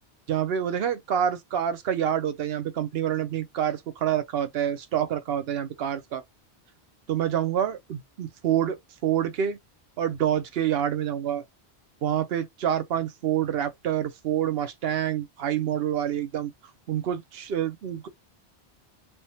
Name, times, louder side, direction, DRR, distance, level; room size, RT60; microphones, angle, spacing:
voice 1, 0.3-6.2 7.1-9.6 10.0-11.4 12.0-16.5 16.9-18.1, right 10 dB, 70° right, 0.8 m, -27 dB
3.4 x 2.2 x 2.7 m
omnidirectional pair, 1.1 m